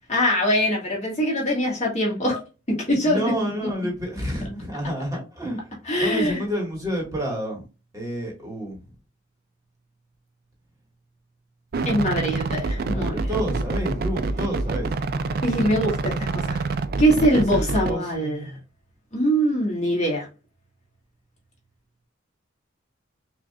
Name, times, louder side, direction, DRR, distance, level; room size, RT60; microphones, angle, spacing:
voice 1, 0.1-2.4 2.7-3.2 5.9-6.4 11.8-13.3 15.4-16.6 17.0-18.6 19.1-20.3, equal, 35° left, -2 dB, 1.6 m, -23 dB
voice 2, 3.0-7.6 7.9-8.9 12.8-15.0 17.3-18.6, equal, 20° right, -2 dB, 1.7 m, -30 dB
sound 1, 11.7-17.9, right 3 dB, 50° right, 0.4 m, -26 dB
6.0 x 2.9 x 2.3 m, 0.31 s
head